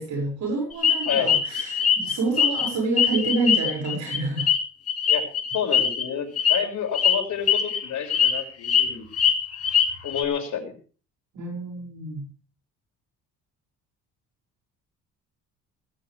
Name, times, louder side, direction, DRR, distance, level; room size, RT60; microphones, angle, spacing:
voice 1, 0.0-4.5 11.3-12.3, right 3 dB, 60° right, 0 dB, 6.6 m, -28 dB
sound 1, 0.8-2.7 3.0-6.0 6.4-6.6 6.9-7.1 7.5-7.8 8.1-8.8 9.1-10.2, left 8 dB, 50° left, 2.5 m, -21 dB
voice 2, 1.1-1.4 5.1-5.2 5.5-9.1 10.0-10.7, left 8 dB, 65° left, 0 dB, 5.9 m, -29 dB
18.0 x 16.0 x 3.5 m, 0.38 s
cardioid pair, 135°, 31 cm